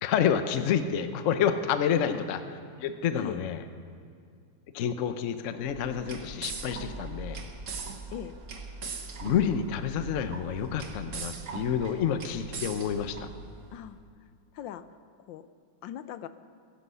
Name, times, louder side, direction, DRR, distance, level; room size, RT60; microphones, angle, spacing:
voice 1, 0.0-2.4 2.8-3.6 4.7-7.4 9.2-13.3, left 8 dB, 55° left, 9 dB, 0.9 m, -28 dB
sound 1, 5.6-13.8, right 4 dB, 45° right, 1.3 m, -40 dB
voice 2, 14.5-14.8 15.3-15.5 15.8-16.3, left 11 dB, 80° left, 12 dB, 1.3 m, -39 dB
22.5 x 10.5 x 5.6 m, 2.3 s
omnidirectional pair, 2.1 m